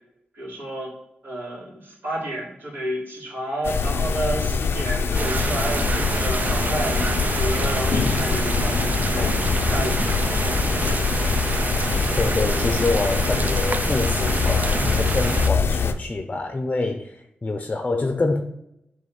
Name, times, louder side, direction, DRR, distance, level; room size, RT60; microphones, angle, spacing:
voice 1, 0.3-0.9 1.2-9.3 9.6-10.6, right 1 dB, 65° right, -4 dB, 2.8 m, -30 dB
sound 1, 3.6-15.9, left 5 dB, 85° left, 0.5 m, -23 dB
sound 2, 5.1-15.5, right 4 dB, 45° right, 0.4 m, -27 dB
voice 2, 12.2-18.4, left 3 dB, 30° left, 6 dB, 0.6 m, -26 dB
7.6 x 3.3 x 5.6 m, 0.82 s
wide cardioid pair, 85°, 4 cm